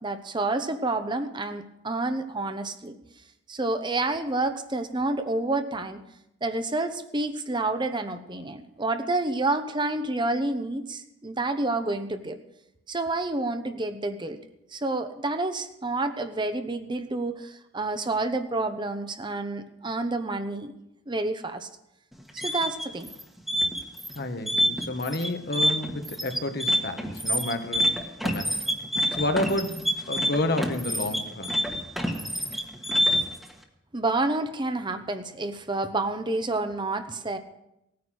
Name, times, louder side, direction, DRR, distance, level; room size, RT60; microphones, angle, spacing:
voice 1, 0.0-3.0 3.5-6.0 6.4-12.4 12.9-14.4 14.7-20.7 21.1-21.7 22.3-23.1 33.9-37.4, right 2 dB, 25° right, 8 dB, 0.9 m, -29 dB
sound 1, 22.1-33.4, equal, ahead, 1.4 m, -27 dB
voice 2, 24.1-28.6 29.1-31.6, left 1 dB, 55° left, 7 dB, 1.3 m, -30 dB
18.0 x 9.5 x 6.3 m, 0.85 s
head